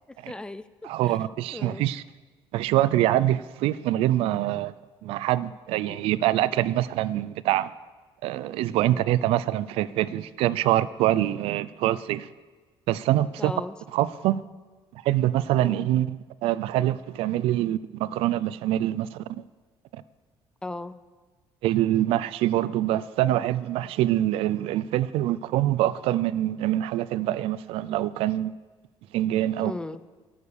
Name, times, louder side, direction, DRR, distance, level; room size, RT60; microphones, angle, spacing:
voice 1, 0.1-1.2 1.5-1.9 5.8-6.1 8.8-9.1 13.4-13.7 15.6-15.9 20.6-21.0 29.6-30.0, left 2 dB, 10° left, 0.4 m, -37 dB
voice 2, 0.8-2.0 2.5-4.7 5.0-7.7 8.2-12.3 12.9-13.5 13.9-14.4 15.0-19.4 21.6-28.6 29.1-29.7, right 14 dB, 80° right, 0.4 m, -25 dB
12.5 x 6.7 x 7.0 m
cardioid pair, 145°, 10 cm